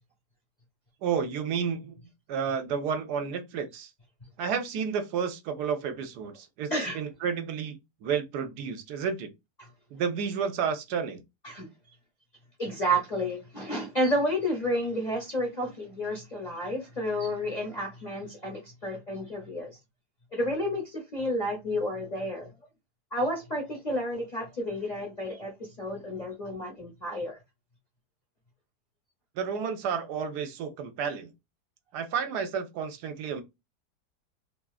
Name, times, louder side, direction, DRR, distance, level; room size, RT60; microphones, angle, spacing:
voice 1, 1.0-2.0 2.3-3.9 4.4-9.3 9.9-11.2 29.4-31.3 31.9-33.4, right 6 dB, 75° right, 1.1 m, -31 dB
voice 2, 12.6-19.8 20.3-22.5 23.1-27.4, equal, 35° left, 0.7 m, -31 dB
2.9 x 2.3 x 2.3 m
omnidirectional pair, 1.8 m